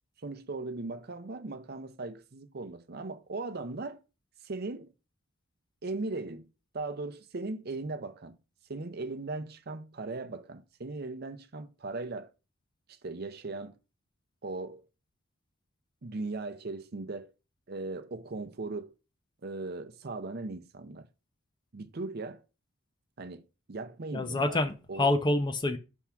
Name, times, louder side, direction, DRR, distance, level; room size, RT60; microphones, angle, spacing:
voice 1, 0.2-4.0 4.4-4.9 5.8-6.5 6.7-8.4 8.7-12.3 12.9-13.8 14.4-14.9 16.0-17.3 17.7-18.9 19.4-21.1 21.7-22.4 23.2-23.4 23.7-24.6 24.9-25.1, right 3 dB, 50° right, 0.6 m, -38 dB
voice 2, 24.1-25.8, left 2 dB, 20° left, 0.5 m, -27 dB
5.8 x 3.6 x 5.7 m
head